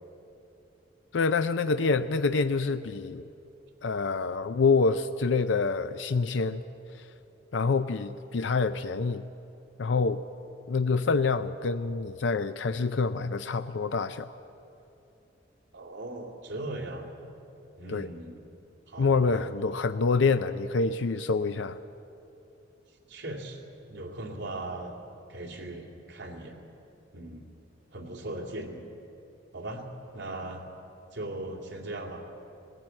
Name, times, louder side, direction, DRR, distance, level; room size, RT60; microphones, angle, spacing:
voice 1, 1.1-3.2 3.8-6.6 6.9-7.1 7.5-9.2 9.8-10.2 10.7-14.4 17.9-18.1 19.0-21.8, left 4 dB, 80° left, 10 dB, 0.5 m, -26 dB
voice 2, 15.7-17.1 17.8-18.4 18.9-19.4 23.1-23.6 23.9-25.0 25.3-26.6 27.1-27.5 27.9-28.8 29.5-29.8 30.1-30.6 31.1-32.3, right 2 dB, 75° right, 1 dB, 2.5 m, -38 dB
19.5 x 15.0 x 8.9 m, 2.9 s
head